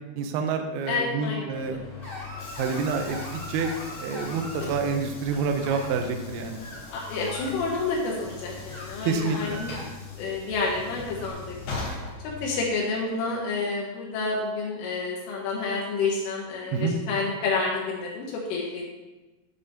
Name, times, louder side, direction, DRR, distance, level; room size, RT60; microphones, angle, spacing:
voice 1, 0.1-1.8 2.6-3.7 4.0-6.6 9.0-9.6 16.7-17.0, right 5 dB, 85° right, 5 dB, 2.3 m, -28 dB
voice 2, 0.9-1.5 6.9-9.7 10.1-11.6 12.4-18.9, left 3 dB, 85° left, -3 dB, 3.8 m, -29 dB
Train / Sliding door, 1.5-12.9, left 5 dB, 55° left, 4.4 m, -40 dB
sound 1, 2.0-4.7 5.3-5.8 6.6-7.5 8.6-9.8 11.0-11.3, left 1 dB, 20° left, 1.7 m, -40 dB
9.2 x 5.3 x 6.8 m, 1.1 s
omnidirectional pair, 5.7 m